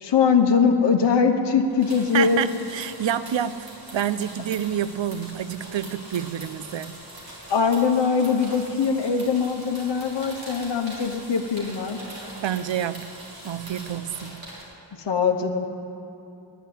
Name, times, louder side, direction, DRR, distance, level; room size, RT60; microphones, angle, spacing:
voice 1, 0.0-2.4 7.5-12.0 15.0-15.7, left 6 dB, 70° left, 4 dB, 1.0 m, -22 dB
sound 1, 1.7-14.6, right 1 dB, 55° right, 3.8 m, -42 dB
voice 2, 2.1-7.0 12.4-13.1 13.4-14.4, right 9 dB, 85° right, 14 dB, 0.6 m, -28 dB
10.5 x 10.0 x 9.2 m, 2.7 s
wide cardioid pair, 100°, 44 cm